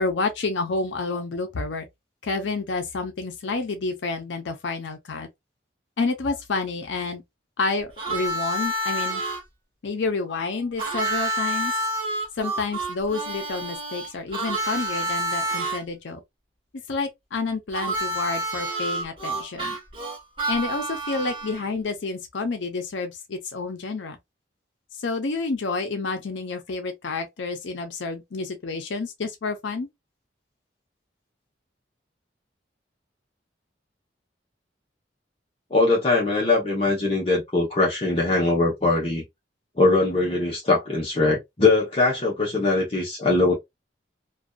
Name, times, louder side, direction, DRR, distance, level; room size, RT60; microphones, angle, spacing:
voice 1, 0.0-1.9 2.2-5.3 6.0-7.2 7.6-9.2 9.8-11.7 12.4-16.2 16.9-19.8 20.5-24.2 25.0-29.9, left 3 dB, 85° left, 0.6 m, -29 dB
Harmonica, 8.0-9.4 10.8-15.8 17.7-21.7, right 1 dB, 30° right, 1.0 m, -28 dB
voice 2, 35.7-39.2 39.8-43.5, left 3 dB, 30° left, 0.7 m, -21 dB
2.5 x 2.3 x 2.2 m
head